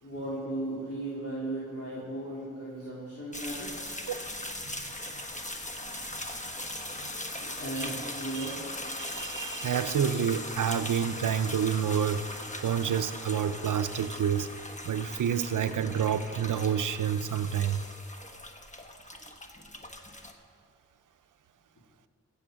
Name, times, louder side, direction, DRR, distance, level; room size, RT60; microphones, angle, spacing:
voice 1, 0.0-4.0 7.4-8.5 19.8-19.9, right 1 dB, 50° left, -8 dB, 3.1 m, -36 dB
sound 1, 3.3-20.3, left 1 dB, 25° left, 1.3 m, -39 dB
voice 2, 8.9-12.2 12.6-14.5 14.8-17.8, right 8 dB, 80° right, 11 dB, 0.6 m, -29 dB
16.0 x 7.1 x 6.3 m, 2.3 s
cardioid pair, 40°, 31 cm